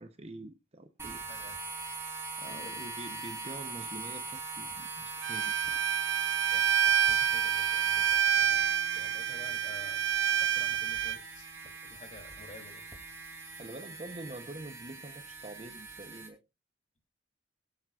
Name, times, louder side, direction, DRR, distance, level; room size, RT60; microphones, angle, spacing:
voice 1, 0.0-1.2 2.4-5.9 13.6-16.4, right 2 dB, 35° right, 0.9 m, -46 dB
sound 1, 1.0-16.3, right 3 dB, 15° right, 2.9 m, -42 dB
voice 2, 2.4-2.8 6.5-10.1 10.4-11.5 11.9-12.9, left 2 dB, 40° left, 3.0 m, -52 dB
Bowed string instrument, 5.2-11.2, right 8 dB, 70° right, 0.6 m, -28 dB
23.0 x 7.7 x 2.5 m
head